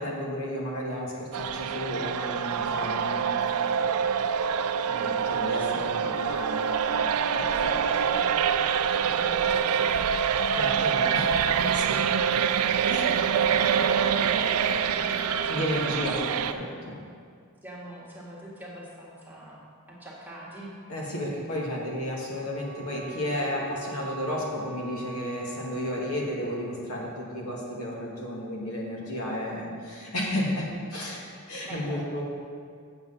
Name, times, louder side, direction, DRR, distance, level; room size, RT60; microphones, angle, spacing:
voice 1, 0.0-3.6 4.8-7.4 10.5-12.0 12.9-13.1 15.5-17.0 20.9-32.2, left 1 dB, 80° left, -3 dB, 1.9 m, -33 dB
sound 1, 1.3-16.5, right 7 dB, 85° right, 0.4 m, -25 dB
voice 2, 5.6-6.3 7.4-10.3 12.9-16.7 17.6-20.7 31.6-32.2, right 1 dB, 10° right, -6 dB, 1.8 m, -43 dB
Wind instrument woodwind instrument, 22.4-26.8, right 5 dB, 45° right, 0.9 m, -44 dB
7.8 x 7.7 x 5.7 m, 2.1 s
head